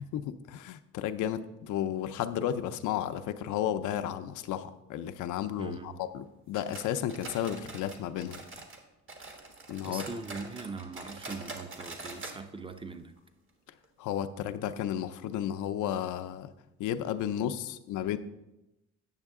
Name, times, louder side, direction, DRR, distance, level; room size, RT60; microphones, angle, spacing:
voice 1, 0.0-8.4 9.7-10.0 14.0-16.5 16.8-18.2, left 10 dB, 85° left, 10 dB, 0.5 m, -33 dB
voice 2, 5.6-6.0 9.8-13.1, right 4 dB, 15° right, 10 dB, 0.6 m, -41 dB
sound 1, 6.5-8.8 9.1-12.4 12.7-12.8 13.2-13.3 13.8-13.9, right 3 dB, 40° right, 1.5 m, -44 dB
8.9 x 6.5 x 3.6 m, 0.95 s
cardioid pair, 90°, 30 cm